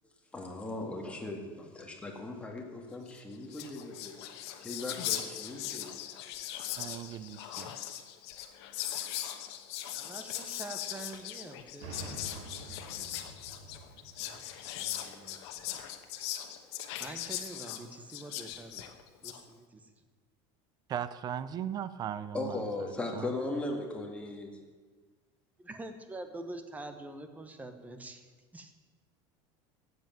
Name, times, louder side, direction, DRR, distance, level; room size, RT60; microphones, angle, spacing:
voice 1, 0.3-4.2 4.6-5.9 22.3-24.5, left 2 dB, 10° left, 1 dB, 1.8 m, -38 dB
Whispering, 3.2-3.3 3.4-19.4, left 12 dB, 85° left, 1.2 m, -39 dB
voice 2, 6.8-7.8 20.9-23.4, right 9 dB, 30° right, 15 dB, 0.5 m, -38 dB
voice 3, 9.9-13.3 14.2-15.7 16.7-19.0 19.2-19.9 25.6-28.7, right 2 dB, 10° right, 8 dB, 1.0 m, -46 dB
sound 1, 11.8-15.5, right 2 dB, 90° right, 2.2 m, -48 dB
13.0 x 8.1 x 7.5 m, 1.4 s
cardioid pair, 155°, 14 cm